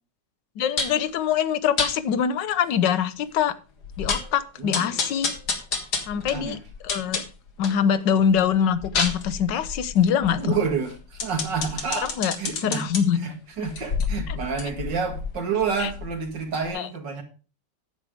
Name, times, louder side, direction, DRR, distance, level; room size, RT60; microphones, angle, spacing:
voice 1, 0.6-3.5 4.0-5.3 6.1-6.6 6.8-7.2 7.6-10.6 12.0-12.4 12.6-13.2 14.3-14.4 15.8-15.9 16.7-16.9, left 8 dB, 85° left, 1.5 m, -23 dB
sound 1, 0.8-1.1 1.8-1.9 2.5-2.6 2.9-3.0 3.4-3.5 3.8-4.3 4.7-7.8 8.2-13.0 13.6-16.3 16.6-16.7, left 4 dB, 65° left, 2.2 m, -30 dB
voice 2, 4.6-5.0 6.1-6.6 10.4-17.2, right 5 dB, 90° right, 2.6 m, -29 dB
9.8 x 7.7 x 4.9 m
omnidirectional pair, 1.9 m